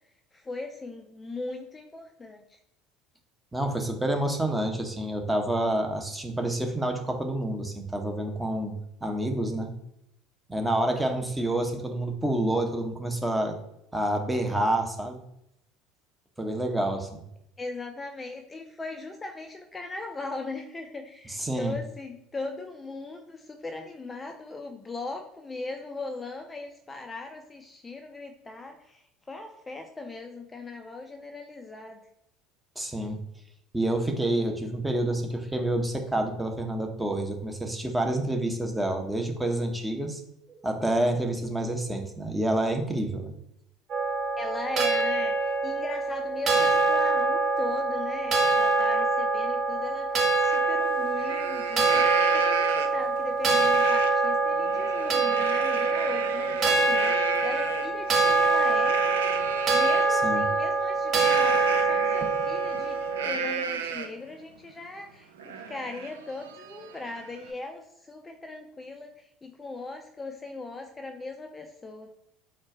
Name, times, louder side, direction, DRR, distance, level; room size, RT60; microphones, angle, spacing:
voice 1, 0.3-2.6 17.6-32.0 44.4-59.2 59.7-72.1, left 3 dB, 20° left, 4 dB, 0.5 m, -39 dB
voice 2, 3.5-8.7 9.0-9.7 10.5-13.6 13.9-15.2 16.4-17.2 21.3-21.7 32.8-33.2 33.7-40.2 40.5-43.3 60.2-60.4, right 1 dB, 10° right, 3 dB, 0.9 m, -28 dB
sound 1, 43.9-63.3, right 3 dB, 40° right, 1.0 m, -25 dB
Livestock farm animals working animals, 50.5-50.6 51.0-53.1 53.7-54.1 54.5-60.1 61.2-64.3 64.7-64.8 65.1-67.5, right 6 dB, 75° right, 0.4 m, -34 dB
4.4 x 2.4 x 4.5 m, 0.78 s
hypercardioid pair, 70°, 0 cm